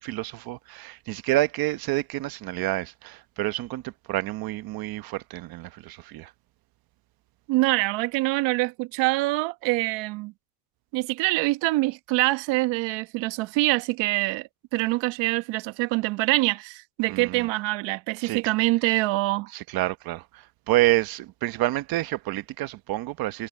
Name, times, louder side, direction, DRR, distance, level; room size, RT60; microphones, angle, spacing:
voice 1, 0.0-6.3 17.1-17.5 18.2-18.4 19.5-23.5, right 17 dB, 45° right, 1.0 m, -28 dB
voice 2, 7.5-10.3 10.9-19.5, right 21 dB, 60° right, 1.4 m, -25 dB
cardioid pair, 140°, 48 cm